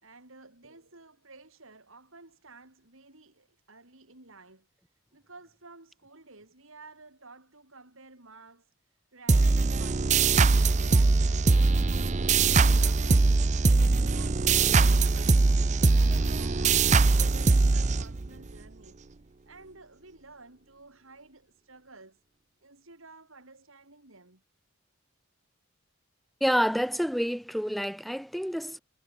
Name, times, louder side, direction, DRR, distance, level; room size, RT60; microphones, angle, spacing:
voice 1, 0.0-12.2 12.4-13.6 14.0-19.0 19.5-22.2 22.6-24.4, right 3 dB, 75° right, 5.0 m, -53 dB
sound 1, 9.3-18.5, right 3 dB, 35° right, 0.5 m, -22 dB
voice 2, 26.4-28.8, equal, ahead, 1.7 m, -28 dB
head